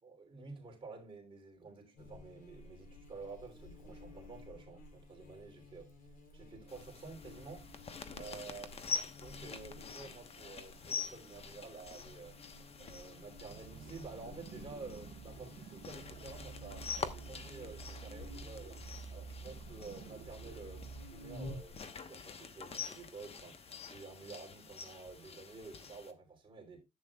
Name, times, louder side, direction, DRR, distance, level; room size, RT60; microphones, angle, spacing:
voice 1, 0.0-5.9 6.3-7.7 8.2-8.8 9.2-12.4 12.8-18.8 19.1-26.8, right 4 dB, 30° right, 3.1 m, -50 dB
Buzz, 2.0-21.8, left 1 dB, 55° left, 3.3 m, -53 dB
sound 1, 6.7-26.1, left 5 dB, 35° left, 1.1 m, -46 dB
sound 2, 13.5-21.1, right 6 dB, 55° right, 0.7 m, -50 dB
11.0 x 8.7 x 2.3 m
cardioid pair, 110°, 17 cm